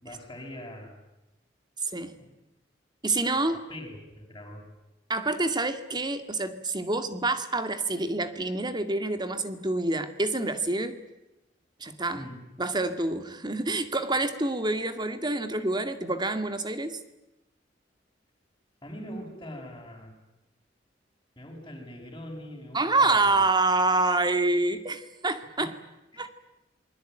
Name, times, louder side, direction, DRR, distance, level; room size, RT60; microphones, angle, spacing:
voice 1, 0.0-0.9 2.2-2.3 3.7-4.7 12.1-12.4 18.8-20.1 21.4-23.4 25.6-25.7 26.1-26.3, equal, 20° left, -5 dB, 6.0 m, -42 dB
voice 2, 1.8-2.1 3.0-3.6 5.1-11.0 11.8-12.3 12.6-17.0 22.7-25.7 26.2-26.3, right 2 dB, 25° right, 9 dB, 2.1 m, -27 dB
27.5 x 21.5 x 9.0 m, 0.95 s
head